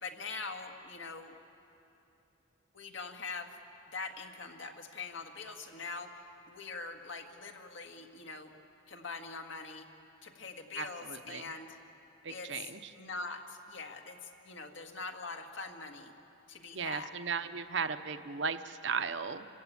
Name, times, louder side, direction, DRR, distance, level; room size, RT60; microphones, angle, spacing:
voice 1, 0.0-1.3 2.7-3.5 3.9-8.5 8.9-9.8 10.2-11.8 12.3-12.7 12.9-16.1 16.5-17.1, left 4 dB, 65° left, 3 dB, 1.8 m, -43 dB
voice 2, 10.8-11.4 12.2-12.8 16.7-19.5, right 5 dB, 60° right, 10 dB, 0.9 m, -36 dB
29.5 x 15.5 x 8.6 m, 2.8 s
head